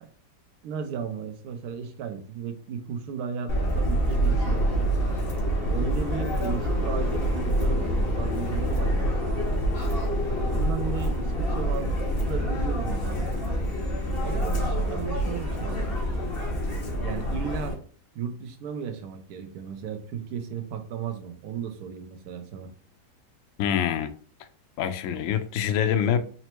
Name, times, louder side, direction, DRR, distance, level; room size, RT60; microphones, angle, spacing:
voice 1, 0.6-4.9 5.6-9.3 10.3-13.3 14.2-15.9 17.0-17.8 18.1-22.7, right 7 dB, 70° right, 6 dB, 1.1 m, -35 dB
Subway metro underground, 3.5-17.7, equal, 40° left, 1.3 m, -26 dB
voice 2, 23.6-24.1 24.8-26.2, left 9 dB, 70° left, 9 dB, 0.8 m, -25 dB
4.2 x 2.0 x 4.4 m, 0.43 s
omnidirectional pair, 1.8 m